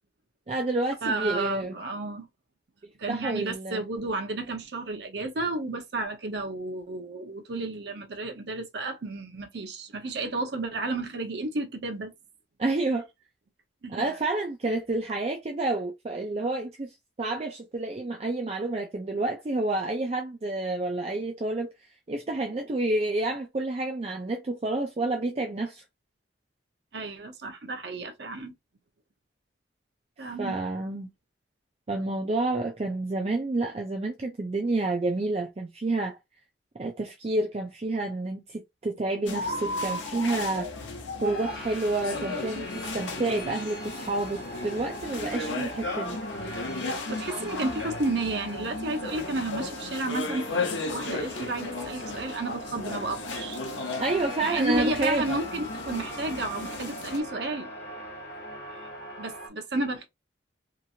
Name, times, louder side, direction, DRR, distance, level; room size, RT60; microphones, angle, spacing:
voice 1, 0.5-1.8 3.1-3.8 12.6-13.1 13.9-16.9 17.2-21.7 22.1-25.8 30.4-31.1 31.9-36.2 36.8-40.7 41.2-46.2 54.0-55.2, right 2 dB, 35° right, 0.4 m, -29 dB
voice 2, 1.0-2.3 3.0-12.1 13.8-14.1 26.9-28.5 30.2-30.6 47.1-50.5 50.9-53.6 54.4-57.7 58.7-58.9 59.2-60.1, right 2 dB, 70° right, 0.7 m, -32 dB
sound 1, 39.3-57.2, left 3 dB, 85° left, 0.7 m, -35 dB
sound 2, 41.2-59.5, equal, 50° left, 1.4 m, -41 dB
2.9 x 2.4 x 2.7 m
head